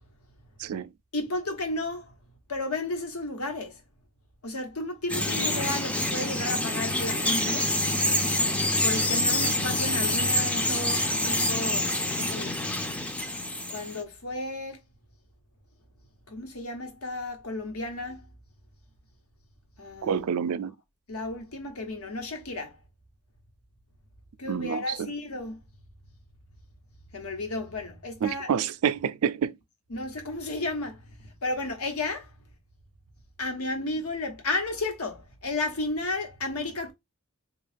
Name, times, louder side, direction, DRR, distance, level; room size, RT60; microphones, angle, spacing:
voice 1, 0.6-0.9 20.0-20.7 24.5-25.1 28.2-29.6, right 7 dB, 80° right, 0.4 m, -28 dB
voice 2, 1.1-2.1 2.5-3.8 4.4-7.7 8.8-11.9 12.2-12.7 13.7-14.8 16.3-18.2 19.8-20.2 21.1-22.7 24.4-25.6 27.1-28.5 29.9-32.3 33.4-36.9, left 2 dB, 85° left, 1.1 m, -33 dB
Bird vocalization bird call bird song, 5.1-14.0, left 1 dB, 5° left, 0.4 m, -26 dB
3.6 x 2.3 x 3.3 m
head